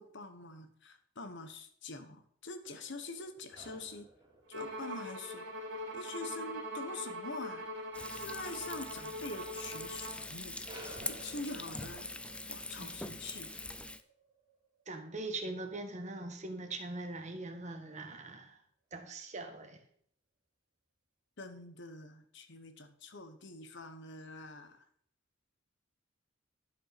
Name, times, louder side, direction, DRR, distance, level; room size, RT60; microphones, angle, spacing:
voice 1, 0.0-4.1 4.5-5.5 5.9-7.7 8.1-10.6 11.0-12.1 12.5-13.6 21.4-24.9, left 3 dB, 65° left, 8 dB, 1.4 m, -45 dB
sound 1, 2.6-10.2 10.6-17.2, right 2 dB, 20° right, 2.5 m, -58 dB
Bowed string instrument, 4.5-10.3, equal, 65° right, 2.2 m, -42 dB
Frying (food), 7.9-14.0, left 2 dB, 5° left, 0.5 m, -43 dB
voice 2, 14.9-18.6 18.9-19.8, right 2 dB, 35° right, 5 dB, 1.5 m, -41 dB
11.5 x 5.9 x 5.9 m, 0.62 s
head